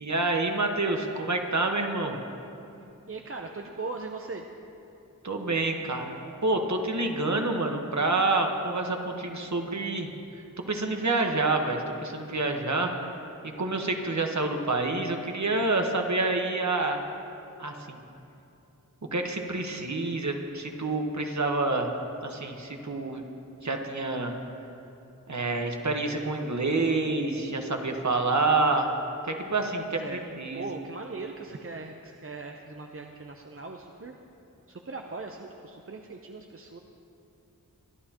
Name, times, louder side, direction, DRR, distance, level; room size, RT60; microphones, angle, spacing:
voice 1, 0.0-2.2 5.2-6.2 6.4-12.9 13.4-17.0 17.6-18.0 19.1-21.9 22.2-23.2 23.6-24.3 25.3-30.7, right 2 dB, 55° right, 3 dB, 1.3 m, -28 dB
voice 2, 3.1-4.5 30.0-30.2 30.5-34.1 34.7-36.8, right 3 dB, 40° right, 2 dB, 0.7 m, -39 dB
23.5 x 11.5 x 2.9 m, 2.8 s
wide cardioid pair, 70°, 34 cm